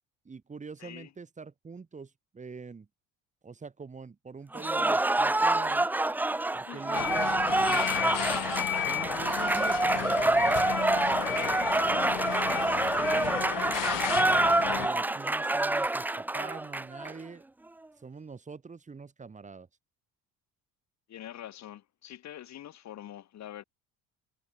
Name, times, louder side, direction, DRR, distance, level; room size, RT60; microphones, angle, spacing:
voice 1, 0.2-2.9 3.4-5.9 6.5-8.4 8.9-11.6 13.0-17.4 18.0-19.7, right 5 dB, 20° right, 5.6 m, -44 dB
voice 2, 0.8-1.1 6.6-7.1 13.0-13.3 21.1-23.6, left 11 dB, 50° left, 6.4 m, -45 dB
Cheering / Applause, 4.5-17.1, right 2 dB, 5° right, 0.4 m, -27 dB
sound 1, 6.9-14.9, left 16 dB, 70° left, 2.5 m, -33 dB
cardioid pair, 155°, 34 cm